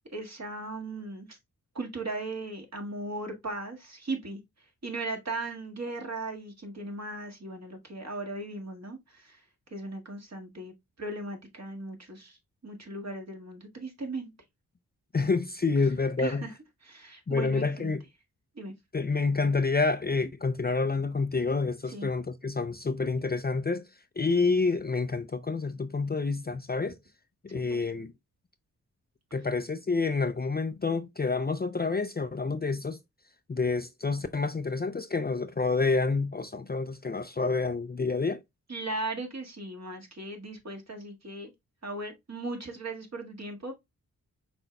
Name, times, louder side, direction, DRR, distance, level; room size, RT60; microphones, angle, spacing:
voice 1, 0.1-1.4 1.7-4.4 4.8-9.4 9.7-10.7 11.0-12.4 12.6-14.3 16.2-16.5 16.8-18.0 18.6-18.7 21.9-22.1 27.5-27.9 38.7-41.5 41.8-43.7, right 2 dB, 45° right, 1.7 m, -37 dB
voice 2, 15.1-16.5 17.3-18.0 18.9-23.9 24.2-27.0 27.4-28.1 29.3-33.0 33.5-38.4, left 4 dB, 25° left, 0.5 m, -28 dB
5.9 x 3.9 x 2.3 m
cardioid pair, 45°, 37 cm